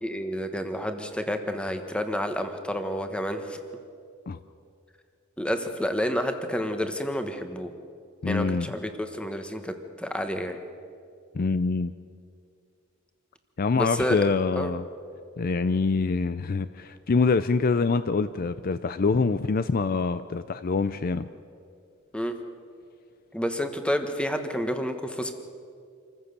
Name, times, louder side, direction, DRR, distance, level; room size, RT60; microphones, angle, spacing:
voice 1, 0.0-3.6 5.4-7.7 8.3-10.6 13.7-14.2 14.5-14.7 22.1-22.4 23.3-25.3, equal, 5° left, 7 dB, 1.3 m, -29 dB
voice 2, 8.2-8.7 11.3-11.9 13.6-14.8 15.4-21.3, left 4 dB, 45° left, 12 dB, 0.5 m, -25 dB
26.5 x 15.0 x 6.7 m, 2.3 s
head